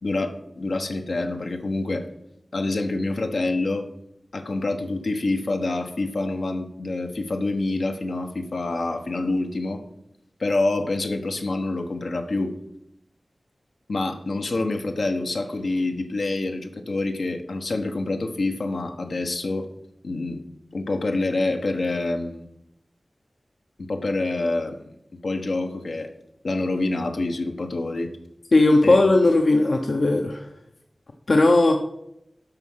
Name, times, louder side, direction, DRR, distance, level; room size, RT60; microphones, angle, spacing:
voice 1, 0.0-2.0 2.5-3.8 4.3-9.8 10.4-12.5 13.9-19.7 20.0-20.4 20.7-22.4 23.8-24.9 25.2-26.1 26.4-28.1 28.8-29.0, left 2 dB, 85° left, 4 dB, 1.1 m, -26 dB
voice 2, 28.5-30.5 31.3-31.8, left 2 dB, 70° left, 3 dB, 0.8 m, -17 dB
12.5 x 4.8 x 5.6 m, 0.80 s
wide cardioid pair, 80°, 0 cm